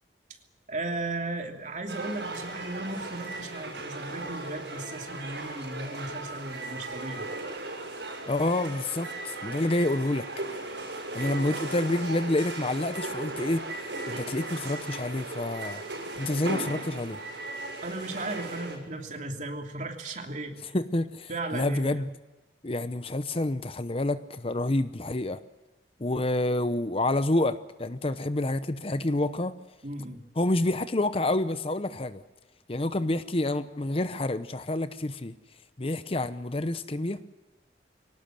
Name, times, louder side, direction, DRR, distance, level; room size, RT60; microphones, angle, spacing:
voice 1, 0.7-7.3 17.8-20.6 21.3-22.0 29.8-30.2, right 2 dB, 45° right, 2.9 m, -36 dB
sound 1, 1.9-18.8, right 2 dB, 85° right, 6.7 m, -37 dB
voice 2, 8.3-10.3 11.1-15.8 16.1-17.2 20.7-22.1 22.6-25.4 26.0-29.6 30.4-32.2 32.7-35.3 35.8-37.2, left 1 dB, 35° left, 0.8 m, -28 dB
23.5 x 18.5 x 7.7 m
head